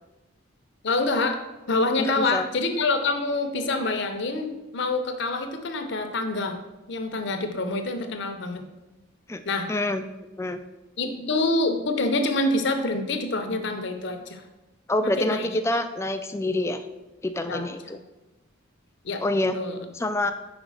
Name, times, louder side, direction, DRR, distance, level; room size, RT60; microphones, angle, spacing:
voice 1, 0.8-1.4 1.7-6.6 6.9-8.7 9.5-9.7 11.0-14.4 15.0-15.6 17.4-17.7 19.0-19.2 19.5-19.8, left 2 dB, 55° left, 6 dB, 0.7 m, -26 dB
voice 2, 2.0-2.5 9.3-9.4 9.7-10.0 10.4-10.6 14.9-16.9 17.2-18.0 19.2-19.5 19.9-20.3, left 1 dB, 15° left, 8 dB, 0.3 m, -26 dB
5.1 x 4.8 x 6.3 m, 1.0 s
head